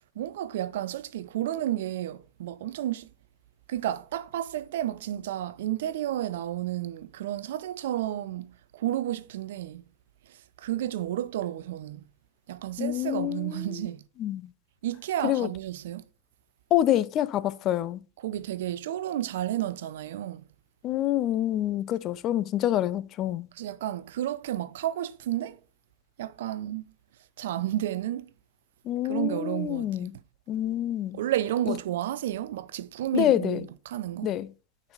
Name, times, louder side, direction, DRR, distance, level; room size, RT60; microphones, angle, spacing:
voice 1, 0.2-3.1 3.7-9.8 10.3-12.0 12.5-14.0 14.8-16.0 18.2-20.4 23.6-25.6 26.2-26.8 27.4-28.3 29.1-30.1 31.1-34.3, right 13 dB, 55° right, 0.4 m, -31 dB
voice 2, 12.8-13.8 14.2-14.5 15.2-15.5 16.7-18.0 20.8-23.5 28.8-30.1 30.5-31.2 31.7-31.8 33.1-33.7 34.2-34.5, left 12 dB, 35° left, 0.4 m, -27 dB
9.4 x 4.1 x 3.9 m
figure-of-eight pair, 90°, 0 cm